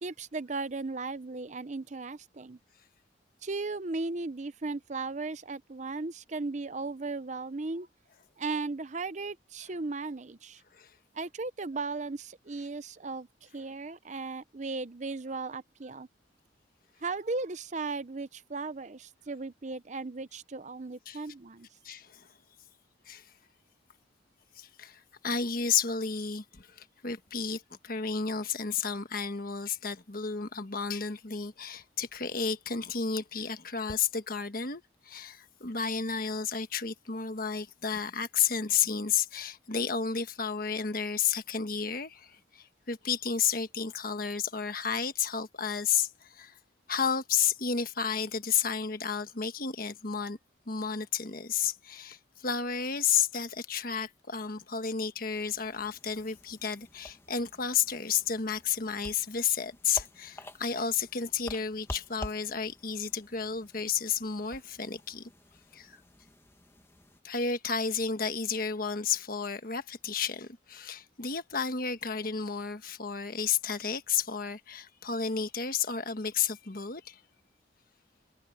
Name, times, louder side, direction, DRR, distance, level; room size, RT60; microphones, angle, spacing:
voice 1, 0.0-2.6 3.4-7.9 8.4-10.6 11.1-16.1 17.0-21.7, right 3 dB, 40° right, 0.7 m, -36 dB
voice 2, 21.8-22.3 23.1-23.3 24.6-46.5 46.9-50.4 50.7-65.3 65.7-66.0 67.2-77.2, left 6 dB, 50° left, 1.4 m, -32 dB
sound 1, 55.3-67.2, left 1 dB, 15° left, 1.3 m, -49 dB
head